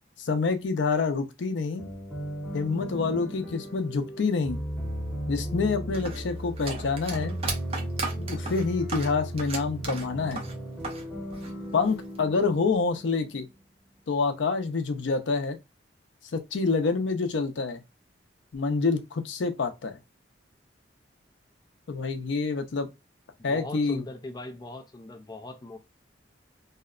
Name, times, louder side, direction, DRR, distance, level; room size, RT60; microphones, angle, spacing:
voice 1, 0.2-1.9 2.5-4.6 5.3-7.3 8.2-10.4 11.7-13.5 14.1-15.6 16.3-17.8 18.5-20.0 21.9-22.9 23.4-24.0, left 4 dB, 90° left, 0.5 m, -27 dB
sound 1, 1.8-13.5, right 1 dB, 5° right, 1.0 m, -36 dB
sound 2, 5.9-11.0 11.3-12.2, right 3 dB, 35° right, 0.5 m, -36 dB
voice 2, 23.4-25.8, left 2 dB, 20° left, 0.4 m, -40 dB
2.7 x 2.1 x 2.3 m
head